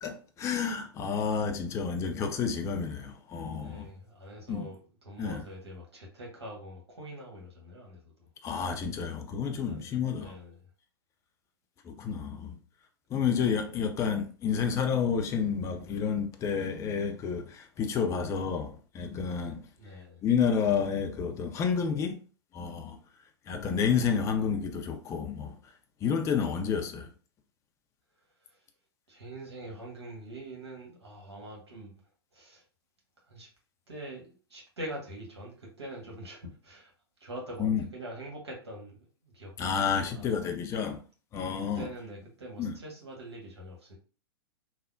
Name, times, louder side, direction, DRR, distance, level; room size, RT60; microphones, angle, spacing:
voice 1, 0.0-3.9 4.5-4.7 5.2-5.4 8.4-10.3 11.8-12.5 13.1-19.7 20.2-22.2 22.5-23.0 23.5-25.6 26.0-27.1 37.6-37.8 39.6-41.0 41.3-41.9 42.6-42.7, left 6 dB, 20° left, 0.4 m, -30 dB
voice 2, 3.6-4.8 5.0-8.3 9.5-10.6 19.8-20.2 28.5-28.6 29.1-32.0 32.3-32.6 33.3-33.5 33.9-36.9 37.2-39.5 40.0-40.4 41.5-44.0, right 1 dB, 80° right, 1.4 m, -44 dB
3.2 x 2.0 x 2.5 m
figure-of-eight pair, 105°, 14 cm